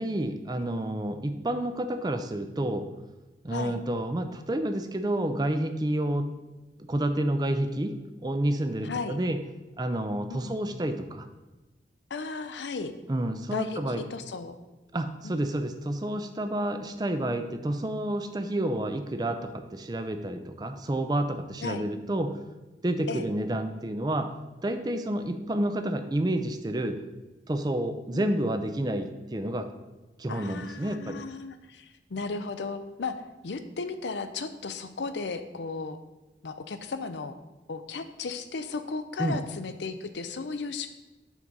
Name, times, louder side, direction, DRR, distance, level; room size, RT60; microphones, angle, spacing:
voice 1, 0.0-2.9 3.4-6.3 6.9-7.9 8.2-9.4 9.8-11.3 13.1-14.0 14.9-22.4 22.8-24.3 24.6-27.0 27.5-29.7 30.2-31.2 39.2-39.4, right 1 dB, 25° right, 8 dB, 0.4 m, -29 dB
voice 2, 3.5-3.8 8.8-9.2 10.3-10.5 12.1-12.9 13.5-14.6 15.2-15.3 21.6-21.8 23.1-23.2 28.1-28.4 30.3-33.1 33.4-36.0 36.4-37.4 37.7-40.9, left 4 dB, 90° left, 9 dB, 0.6 m, -35 dB
5.9 x 4.0 x 6.0 m, 1.1 s
head